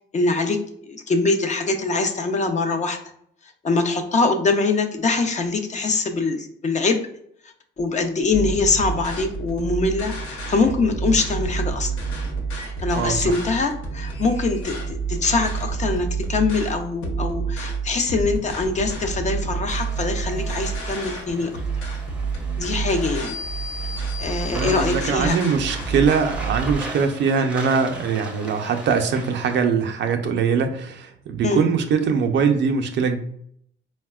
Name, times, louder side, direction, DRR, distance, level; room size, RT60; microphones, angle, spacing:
voice 1, 0.1-0.6 0.9-3.0 3.6-7.0 7.8-11.9 12.8-21.5 22.6-23.4 24.2-25.4 31.4-31.7, left 3 dB, 35° left, 5 dB, 0.5 m, -23 dB
sound 1, 8.3-26.8, right 4 dB, 85° left, 0.8 m, -29 dB
voice 2, 12.9-13.4 24.5-33.2, right 6 dB, 65° right, 5 dB, 0.4 m, -22 dB
sound 2, 19.9-29.6, right 1 dB, 5° right, 0.6 m, -39 dB
4.0 x 2.1 x 2.2 m, 0.67 s
cardioid pair, 90°, 20 cm